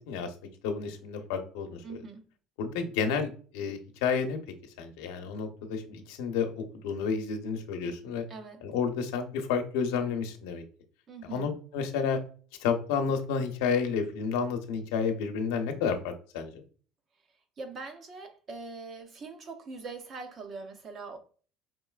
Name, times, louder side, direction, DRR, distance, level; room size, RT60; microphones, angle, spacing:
voice 1, 0.6-1.8 2.6-4.4 4.8-8.2 8.6-10.6 11.2-12.2 12.6-16.6, left 6 dB, 90° left, 0.8 m, -30 dB
voice 2, 1.8-2.2 8.3-8.6 11.1-11.5 17.6-21.2, right 4 dB, 30° right, 0.6 m, -42 dB
5.1 x 3.1 x 2.3 m
cardioid pair, 145°, 0 cm